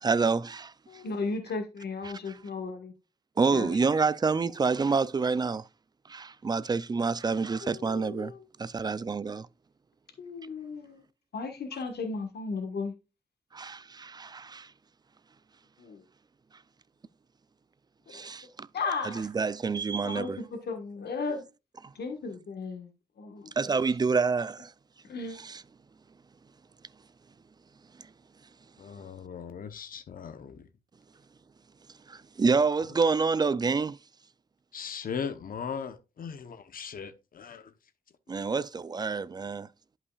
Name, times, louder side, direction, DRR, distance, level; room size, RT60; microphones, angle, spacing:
voice 1, 0.0-0.7 2.3-2.4 3.4-5.6 6.1-8.3 8.6-9.5 13.5-14.7 18.1-18.7 19.0-20.4 23.6-24.7 25.4-25.6 32.1-34.0 38.3-39.7, right 4 dB, 25° right, 0.3 m, -28 dB
voice 2, 0.9-2.9 3.5-3.8 7.6-8.4 10.2-11.0 11.3-12.9 15.8-16.0 18.1-18.2 18.7-19.3 20.0-21.4 21.9-22.9 23.2-23.5 25.0-25.4, left 4 dB, 85° left, 1.4 m, -35 dB
voice 3, 28.8-30.6 34.7-37.7, left 6 dB, 60° left, 0.8 m, -38 dB
11.0 x 5.6 x 2.3 m
wide cardioid pair, 125°, 16 cm